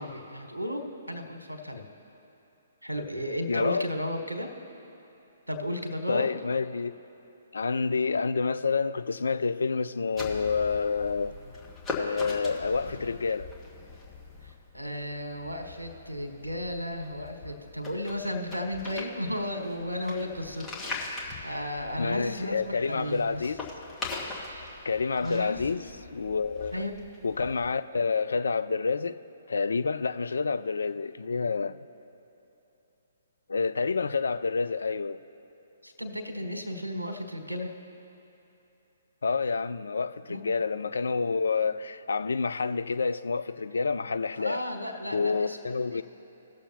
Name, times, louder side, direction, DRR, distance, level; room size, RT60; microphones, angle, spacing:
voice 1, 0.0-1.8 2.8-4.5 5.5-6.3 14.4-23.5 24.5-24.7 25.2-25.6 26.7-26.9 35.8-37.7 40.3-40.4 44.3-45.6 45.9-46.0, left 1 dB, 85° right, 1.4 m, -34 dB
voice 2, 3.5-3.9 6.1-6.9 7.5-11.4 11.9-13.5 22.0-23.6 24.8-25.8 26.1-26.8 27.2-29.2 29.5-31.8 33.5-35.2 39.2-44.6 45.1-46.0, left 4 dB, 65° left, 0.4 m, -28 dB
sound 1, 10.1-27.7, left 3 dB, 10° left, 1.6 m, -41 dB
18.5 x 6.8 x 2.9 m
figure-of-eight pair, 125°, 0 cm